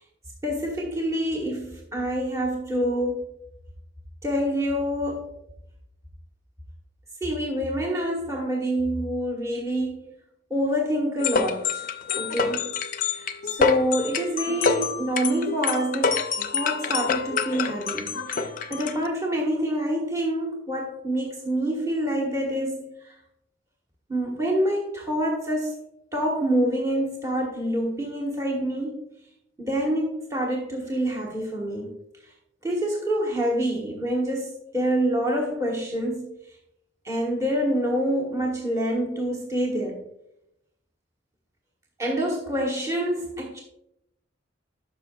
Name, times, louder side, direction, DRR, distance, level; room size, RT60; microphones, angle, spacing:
voice 1, 0.4-3.2 4.2-5.3 7.2-10.1 10.5-11.9 12.1-12.7 13.0-23.1 24.1-25.7 26.1-29.0 29.6-31.9 32.6-36.3 37.0-40.0 42.0-43.6, equal, 15° right, -2 dB, 1.2 m, -27 dB
sound 1, 11.2-19.1, left 5 dB, 40° left, 0.5 m, -27 dB
12.5 x 5.7 x 2.3 m, 0.80 s
head